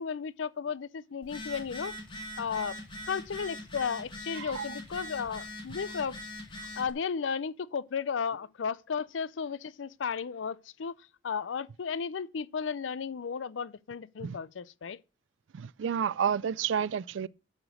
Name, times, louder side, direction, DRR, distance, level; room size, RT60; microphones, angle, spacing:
voice 1, 0.0-2.0 2.4-2.8 3.1-6.2 6.6-15.0, left 6 dB, 90° left, 0.5 m, -34 dB
Telephone, 1.2-6.9, left 1 dB, 25° left, 2.3 m, -42 dB
voice 2, 15.5-17.3, right 7 dB, 90° right, 0.4 m, -30 dB
11.0 x 4.9 x 6.4 m
head